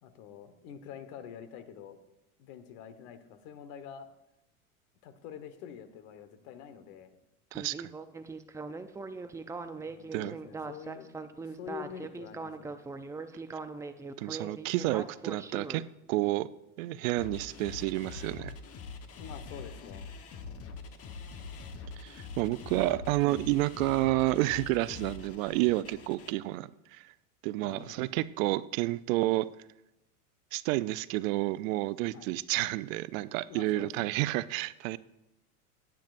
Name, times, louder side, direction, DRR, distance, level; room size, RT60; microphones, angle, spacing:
voice 1, 0.0-2.0 2.4-4.1 5.0-7.2 9.8-12.8 19.2-20.1 22.9-23.0 27.6-28.1 32.1-32.3 33.5-34.2, left 8 dB, 60° left, 10 dB, 1.4 m, -46 dB
Speech synthesizer, 7.5-15.8, right 4 dB, 10° right, 0.4 m, -40 dB
voice 2, 7.5-7.9 10.1-10.3 14.2-15.8 16.1-16.5 16.8-18.5 22.0-27.1 27.4-29.5 30.5-35.0, right 17 dB, 70° right, 16 dB, 0.6 m, -30 dB
sound 1, 17.2-26.3, left 4 dB, 35° left, 1.2 m, -44 dB
17.0 x 9.1 x 2.6 m, 0.88 s
supercardioid pair, 115°, 42 cm